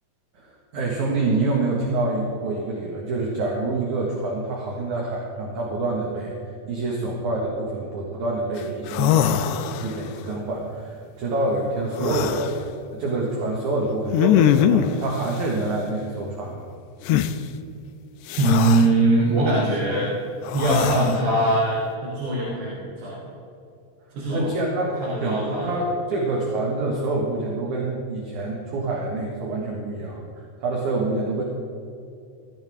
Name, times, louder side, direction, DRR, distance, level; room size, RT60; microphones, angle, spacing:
voice 1, 0.3-6.3 6.7-12.5 12.9-16.6 24.3-31.4, right 2 dB, 55° right, -1 dB, 2.6 m, -26 dB
sound 1, 8.6-8.7 8.9-10.1 11.9-12.5 14.1-15.0 17.1-17.3 18.3-18.9 20.4-21.2, left 10 dB, 85° left, 2.7 m, -21 dB
voice 2, 18.4-20.1 20.5-23.3 24.1-24.5 24.8-25.8, right 2 dB, 80° right, -7 dB, 5.7 m, -22 dB
19.0 x 14.5 x 3.6 m, 2.5 s
omnidirectional pair, 4.8 m